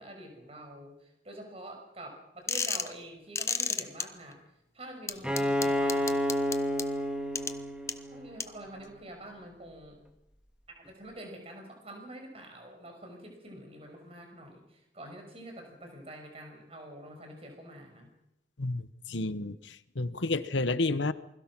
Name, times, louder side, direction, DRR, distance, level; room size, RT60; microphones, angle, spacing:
voice 1, 0.0-4.4 4.7-6.2 8.1-10.0 10.8-18.1, right 1 dB, 30° right, 3 dB, 5.9 m, -46 dB
sound 1, 2.5-2.9 3.3-4.0 5.1-6.8 7.3-7.5 7.9-8.0 8.4-8.5, left 5 dB, 15° left, 0.9 m, -30 dB
Bowed string instrument, 5.2-8.9, equal, 5° right, 1.8 m, -30 dB
voice 2, 18.6-21.1, left 2 dB, 80° left, 13 dB, 1.1 m, -31 dB
28.5 x 21.5 x 6.1 m, 0.80 s
head